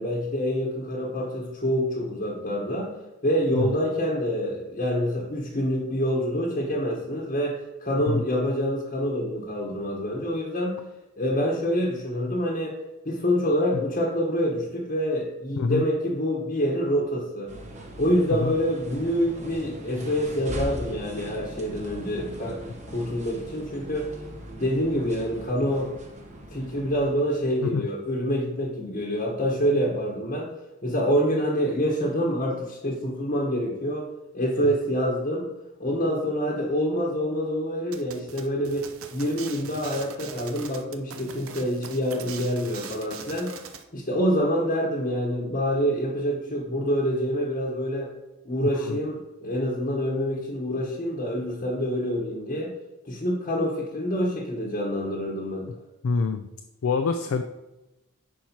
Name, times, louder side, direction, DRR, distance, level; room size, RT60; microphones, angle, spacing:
voice 1, 0.0-2.9 3.2-10.8 11.2-12.8 13.0-17.5 18.0-24.1 24.6-25.9 26.5-30.5 30.8-34.1 34.3-35.5 35.8-43.5 43.9-48.1 48.4-52.7 53.1-55.7, equal, 40° left, -3 dB, 1.1 m, -26 dB
sound 1, 17.5-27.7, equal, 30° right, 1.0 m, -40 dB
sound 2, 37.9-43.8, right 6 dB, 70° right, 0.6 m, -41 dB
voice 2, 56.0-56.5 56.8-57.4, left 4 dB, 70° left, 7 dB, 0.4 m, -25 dB
10.0 x 4.6 x 2.9 m, 0.99 s
head